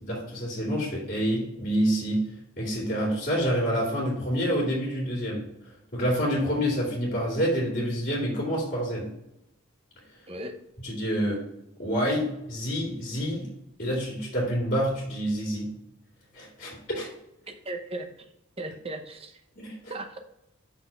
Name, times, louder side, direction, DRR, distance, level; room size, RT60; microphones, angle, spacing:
voice 1, 0.0-2.2 2.6-5.4 5.9-9.1 10.8-11.4 11.8-13.5 13.8-15.7 16.3-17.1 19.6-19.9, equal, 40° left, -4 dB, 2.4 m, -27 dB
voice 2, 10.3-10.6 17.5-19.4 19.9-20.2, right 2 dB, 30° right, 6 dB, 0.7 m, -37 dB
6.0 x 4.3 x 5.4 m, 0.84 s
head